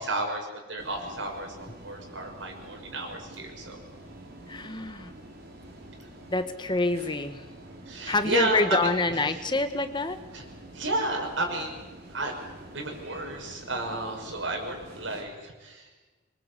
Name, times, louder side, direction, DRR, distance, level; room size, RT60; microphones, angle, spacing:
voice 1, 0.0-3.8 7.9-9.4 10.3-10.4 10.7-11.8 12.1-12.3 12.7-15.9, right 2 dB, 75° right, 2 dB, 6.2 m, -32 dB
sound 1, 0.8-15.2, right 1 dB, 55° right, 5.4 m, -47 dB
voice 2, 4.5-5.1 6.3-7.4 8.1-10.2, left 2 dB, 25° left, 9 dB, 1.5 m, -27 dB
25.5 x 22.5 x 8.3 m, 1.2 s
head